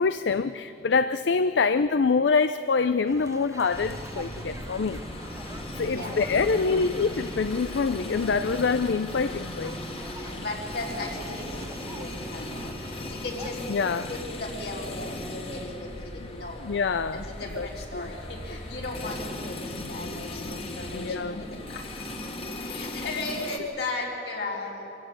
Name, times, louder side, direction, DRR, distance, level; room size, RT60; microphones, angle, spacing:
voice 1, 0.0-5.0 5.8-9.8 13.7-14.1 16.6-17.2 17.6-17.7 17.9-18.1 20.9-21.4, left 4 dB, 80° left, 12 dB, 0.5 m, -25 dB
sound 1, 3.1-13.7, right 2 dB, 15° right, 0.7 m, -45 dB
sound 2, 3.7-23.6, left 1 dB, 30° left, 1.6 m, -37 dB
sound 3, 4.4-21.1, equal, 85° right, 5.0 m, -48 dB
voice 2, 5.9-6.2 10.2-12.7 13.1-13.6 14.1-16.6 17.1-19.6 19.9-21.8 22.6-24.8, left 2 dB, 60° left, -2 dB, 4.0 m, -36 dB
26.0 x 15.5 x 8.8 m, 3.0 s
head